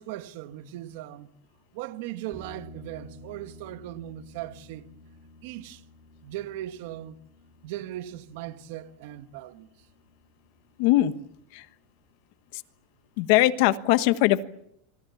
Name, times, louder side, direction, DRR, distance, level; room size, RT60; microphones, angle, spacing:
voice 1, 0.0-1.3 1.7-4.9 5.4-5.8 6.2-7.2 7.6-9.9, right 13 dB, 55° right, 1.5 m, -38 dB
sound 1, 2.3-11.8, left 1 dB, 20° right, 5.1 m, -52 dB
voice 2, 10.8-11.1 11.5-11.6 12.5-12.6 13.2-14.4, left 16 dB, 50° left, 1.2 m, -21 dB
26.5 x 24.5 x 7.2 m
supercardioid pair, 175°, 0 cm